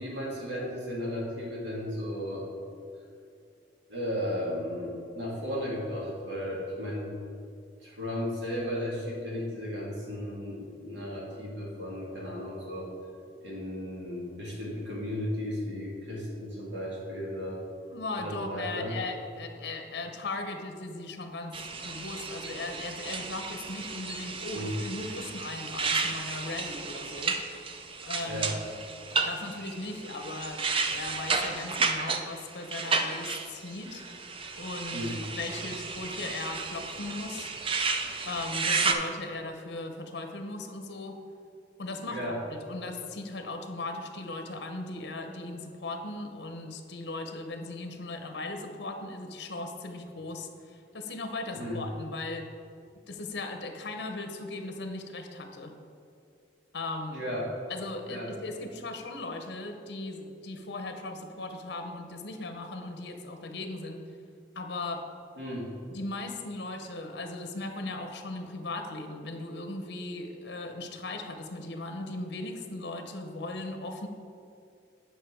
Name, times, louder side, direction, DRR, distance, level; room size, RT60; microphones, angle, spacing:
voice 1, 0.0-2.5 3.9-7.1 7.8-12.9 13.4-17.6 18.2-19.0 24.5-24.8 28.2-28.6 34.9-35.2 42.1-42.4 51.5-51.8 57.1-57.5 58.1-58.3 65.4-65.7, equal, 75° right, -4 dB, 2.0 m, -35 dB
voice 2, 17.9-27.4 28.0-28.5 29.2-34.1 34.6-37.5 38.2-41.2 41.8-52.5 53.1-55.8 56.7-57.2 57.7-64.0 64.5-65.0 65.9-74.1, left 2 dB, 65° left, 5 dB, 0.8 m, -38 dB
sound 1, 21.5-38.9, right 4 dB, 30° right, 0.5 m, -33 dB
8.4 x 5.4 x 4.5 m, 2.4 s
head